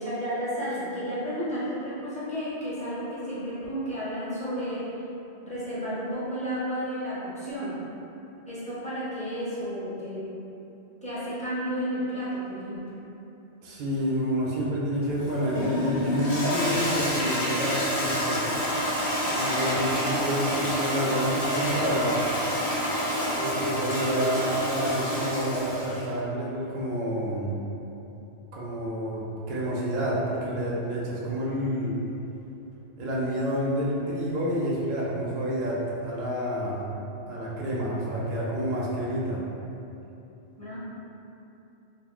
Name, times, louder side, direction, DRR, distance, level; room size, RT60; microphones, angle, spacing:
voice 1, 0.0-4.8 5.4-7.8 8.5-10.2 11.0-12.8 40.6-40.8, equal, 10° left, -11 dB, 0.6 m, -32 dB
voice 2, 13.6-18.6 19.3-22.1 23.4-27.6 28.5-31.9 33.0-36.8 37.3-39.4, equal, 55° right, -6 dB, 0.6 m, -29 dB
Toilet flush, 15.0-26.1, equal, 55° left, 0.7 m, -28 dB
2.4 x 2.1 x 3.5 m, 2.9 s
omnidirectional pair, 1.1 m